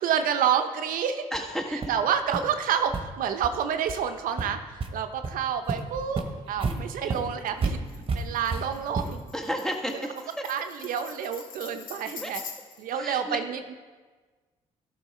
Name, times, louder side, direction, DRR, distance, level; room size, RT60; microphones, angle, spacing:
voice 1, 0.0-1.3 1.7-7.8 8.1-9.2 9.9-10.1 10.5-12.4 12.8-13.7, right 8 dB, 70° right, 8 dB, 0.8 m, -29 dB
voice 2, 1.3-1.8 9.3-10.0 12.2-12.3 12.9-13.4, equal, 5° left, 2 dB, 1.5 m, -31 dB
sound 1, 1.3-1.4 1.8-2.0 2.3-2.4 2.9-3.0 3.4-3.5 3.9-4.0 4.4-4.9 5.2-5.3 5.7-9.3, right 4 dB, 40° right, 1.2 m, -31 dB
Tambourine, 7.9-12.9, left 6 dB, 70° left, 1.3 m, -44 dB
12.0 x 5.9 x 4.2 m, 1.4 s
supercardioid pair, 65°, 15 cm